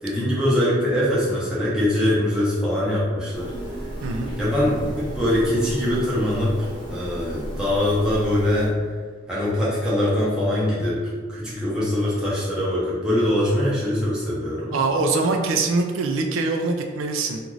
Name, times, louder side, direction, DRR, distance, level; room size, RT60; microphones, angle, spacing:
voice 1, 0.0-3.5 4.4-8.7 9.3-14.8, left 1 dB, 5° right, -9 dB, 0.8 m, -23 dB
sound 1, 3.3-8.7, equal, 20° left, 0.9 m, -34 dB
voice 2, 4.0-4.4 14.7-17.4, right 3 dB, 85° right, 4 dB, 0.3 m, -23 dB
2.5 x 2.4 x 3.0 m, 1.5 s
head